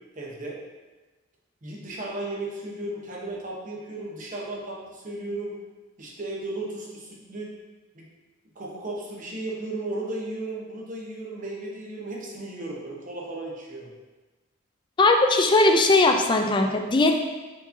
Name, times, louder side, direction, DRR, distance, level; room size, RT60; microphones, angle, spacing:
voice 1, 0.1-0.6 1.6-5.5 6.0-7.5 7.9-8.1 8.5-13.9, right 2 dB, 40° right, -3 dB, 0.9 m, -35 dB
voice 2, 15.0-17.2, left 2 dB, 25° left, 4 dB, 0.4 m, -19 dB
4.6 x 4.1 x 2.7 m, 1.2 s
head